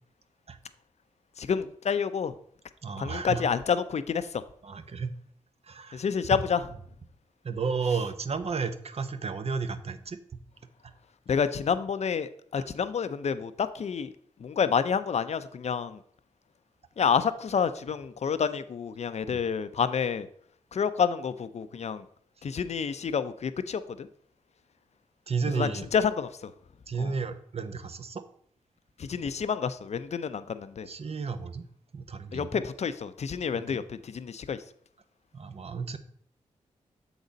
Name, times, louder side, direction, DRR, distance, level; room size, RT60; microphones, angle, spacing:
voice 1, 1.4-2.3 3.0-4.4 5.9-6.7 11.3-14.1 14.4-16.0 17.0-20.3 20.7-22.0 22.4-24.1 25.5-26.5 27.0-27.1 29.0-30.9 32.3-34.6, left 6 dB, 55° left, 12 dB, 0.6 m, -29 dB
voice 2, 2.8-3.5 4.6-5.2 5.6-6.0 7.4-10.2 12.6-12.7 19.3-19.4 25.3-25.9 26.9-28.2 30.9-31.6 31.9-32.6 33.7-33.8 35.3-36.0, right 5 dB, 50° right, 10 dB, 0.8 m, -32 dB
7.1 x 4.0 x 5.1 m, 0.64 s
supercardioid pair, 50°, 13 cm